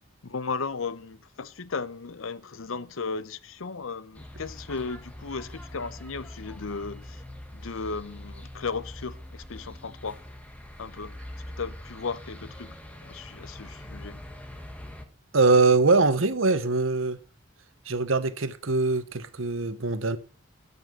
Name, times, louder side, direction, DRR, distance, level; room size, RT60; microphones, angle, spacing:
voice 1, 0.2-7.2 7.5-10.2 10.8-11.2 11.6-12.8 13.0-14.2, left 4 dB, 80° left, 0.8 m, -35 dB
sound 1, 4.1-15.0, left 1 dB, 5° left, 1.5 m, -43 dB
voice 2, 15.3-17.2 17.9-20.2, right 3 dB, 75° right, 1.0 m, -22 dB
13.0 x 5.6 x 7.8 m
head